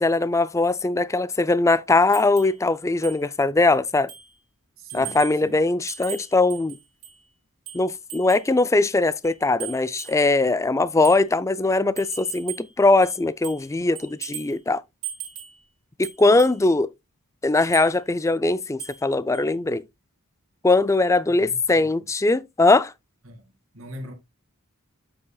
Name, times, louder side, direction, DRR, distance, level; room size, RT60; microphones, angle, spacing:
voice 1, 0.0-4.1 4.9-6.8 7.7-14.8 16.0-16.9 17.4-19.8 20.6-22.9, left 2 dB, 15° left, 0.4 m, -21 dB
sound 1, 2.1-2.6 3.0-3.2 3.6-3.7 4.1-4.4 4.9-5.4 5.9-7.2 7.7-8.5 9.2-10.4 11.0-11.2 12.0-12.7 13.0-13.7 14.0-14.6 15.0-15.6 16.0-16.6 17.6-17.9 18.8-19.1 19.3-19.5, right 11 dB, 90° right, 4.5 m, -38 dB
voice 2, 4.8-5.6 21.3-22.1 23.2-23.4 23.7-24.1, equal, 60° right, 2.2 m, -41 dB
8.4 x 7.8 x 2.3 m
head